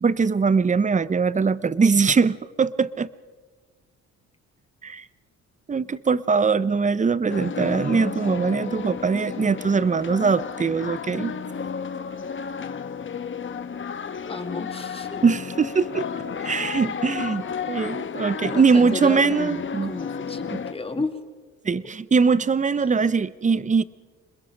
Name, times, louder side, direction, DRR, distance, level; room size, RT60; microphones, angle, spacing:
voice 1, 0.0-3.1 4.8-5.0 5.7-11.3 15.2-16.1 16.4-17.4 17.7-19.9 20.5-20.6 21.6-23.8, right 5 dB, 25° right, 17 dB, 0.8 m, -21 dB
sound 1, 7.3-20.7, left 6 dB, 40° left, 1.2 m, -32 dB
voice 2, 14.3-15.2 18.4-21.2, left 3 dB, 20° left, 6 dB, 2.5 m, -33 dB
26.5 x 21.5 x 5.2 m, 1.4 s
cardioid pair, 90°, 30 cm